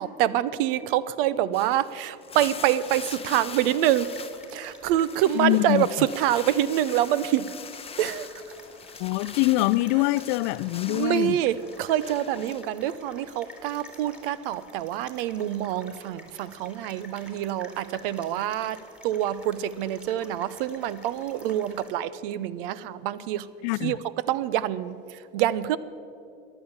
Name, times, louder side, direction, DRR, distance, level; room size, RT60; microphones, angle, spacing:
voice 1, 0.0-4.1 4.5-7.5 8.0-8.4 10.9-23.5 23.8-24.0 24.3-25.8, right 12 dB, 70° right, 0.7 m, -26 dB
sound 1, 1.5-4.5 4.8-11.2 11.6-12.6, left 7 dB, 20° left, 0.7 m, -42 dB
sound 2, 2.7-21.9, left 1 dB, 5° right, 2.7 m, -49 dB
voice 2, 5.4-5.9 9.0-11.3 23.6-24.0, left 19 dB, 60° left, 0.5 m, -24 dB
14.0 x 11.0 x 7.2 m
hypercardioid pair, 85°, 29 cm